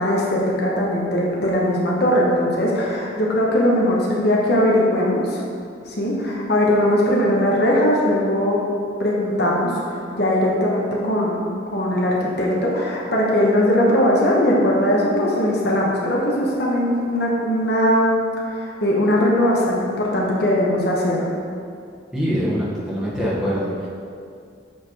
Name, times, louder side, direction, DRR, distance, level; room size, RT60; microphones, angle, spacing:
voice 1, 0.0-5.4 5.9-8.6 9.0-18.1 18.5-21.3, left 1 dB, 60° left, -4 dB, 1.0 m, -20 dB
voice 2, 22.1-23.9, equal, 5° right, -9 dB, 1.2 m, -23 dB
7.3 x 3.2 x 4.5 m, 2.4 s
head